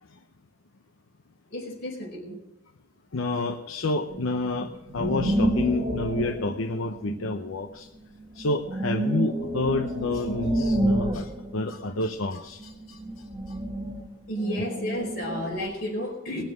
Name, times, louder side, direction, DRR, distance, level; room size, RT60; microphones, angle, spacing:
voice 1, 1.5-2.4 14.3-16.4, equal, 50° left, -1 dB, 4.8 m, -32 dB
voice 2, 3.1-7.9 8.3-13.0 13.5-13.6, left 2 dB, 85° left, 5 dB, 0.8 m, -29 dB
sound 1, 4.1-7.7 8.2-12.3 12.6-15.7, right 1 dB, 20° right, 1.7 m, -29 dB
19.5 x 7.4 x 6.3 m, 0.88 s
head